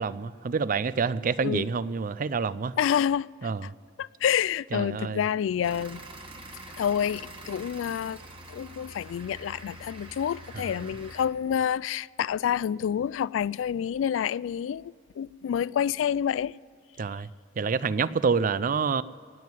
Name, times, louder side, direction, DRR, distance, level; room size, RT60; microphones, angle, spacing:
voice 1, 0.0-2.7 3.4-3.7 4.7-5.2 10.5-10.8 17.0-17.3 17.6-19.0, right 5 dB, 45° right, 0.4 m, -27 dB
voice 2, 2.8-3.3 3.6-3.7 4.0-6.0 6.8-8.2 8.5-16.5, left 8 dB, 80° left, 0.3 m, -28 dB
sound 1, 5.6-11.3, right 1 dB, 30° right, 1.8 m, -45 dB
19.0 x 7.6 x 9.0 m
head